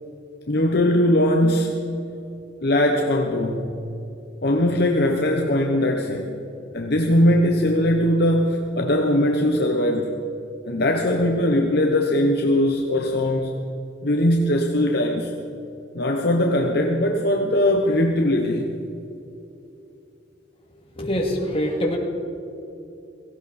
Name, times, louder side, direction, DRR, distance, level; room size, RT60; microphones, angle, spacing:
voice 1, 0.5-1.9 2.6-3.7 4.4-6.3 6.7-10.1 10.7-13.6 14.0-15.3 15.9-18.7, left 1 dB, 55° left, 2 dB, 1.0 m, -20 dB
voice 2, 20.7-22.0, equal, 30° left, -1 dB, 2.4 m, -25 dB
17.5 x 16.5 x 4.3 m, 2.8 s
head